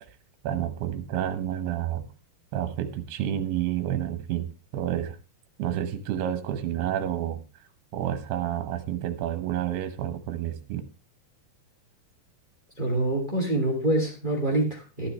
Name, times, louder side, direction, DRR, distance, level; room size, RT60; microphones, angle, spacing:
voice 1, 0.4-2.1 2.5-4.5 4.7-5.2 5.6-7.4 7.9-10.8, right 11 dB, 75° right, 9 dB, 3.1 m, -29 dB
voice 2, 12.8-15.1, right 1 dB, 15° right, 1 dB, 2.1 m, -26 dB
12.5 x 11.5 x 3.3 m, 0.31 s
omnidirectional pair, 4.8 m